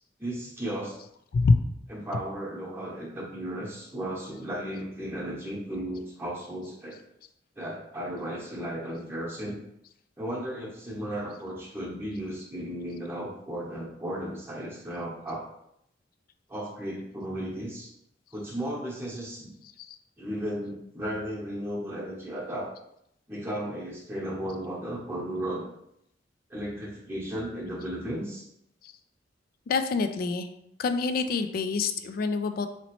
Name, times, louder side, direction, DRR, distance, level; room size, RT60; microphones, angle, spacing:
voice 1, 0.2-1.0 1.9-7.0 7.6-9.6 10.2-15.5 16.5-17.9 18.3-19.5 20.2-22.7 23.3-25.7 26.5-28.5, right 1 dB, 15° right, -5 dB, 0.8 m, -35 dB
voice 2, 29.7-30.5 30.8-32.7, left 4 dB, 50° left, 9 dB, 0.3 m, -26 dB
4.1 x 2.9 x 3.0 m, 0.77 s
head